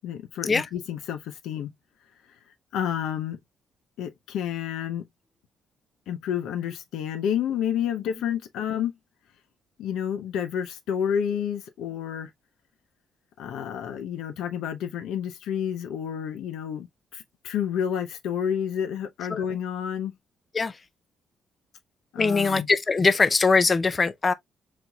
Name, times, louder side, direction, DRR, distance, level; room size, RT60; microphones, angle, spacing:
voice 1, 0.0-1.7 2.7-3.4 4.0-5.1 6.1-8.9 9.8-12.3 13.4-16.9 17.1-20.1 22.1-22.7, left 9 dB, 85° left, 0.7 m, -30 dB
voice 2, 22.2-24.3, left 4 dB, 30° left, 0.5 m, -21 dB
4.4 x 4.1 x 2.2 m
cardioid pair, 90°, 0 cm